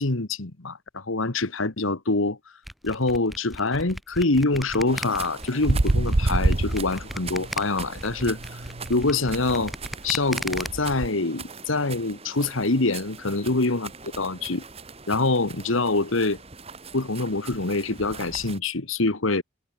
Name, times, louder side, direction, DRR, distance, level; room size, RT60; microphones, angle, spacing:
voice 1, 0.0-2.4 2.8-8.6 8.9-9.7 10.0-13.9 14.2-14.6 15.1-16.4 16.9-19.4, left 3 dB, 75° left, 1.6 m, -25 dB
sound 1, 2.7-10.7, equal, ahead, 4.0 m, -36 dB
sound 2, 4.9-18.6, right 5 dB, 30° right, 2.0 m, -42 dB
sound 3, 5.7-7.5 7.8-11.1, right 2 dB, 60° right, 1.2 m, -26 dB
head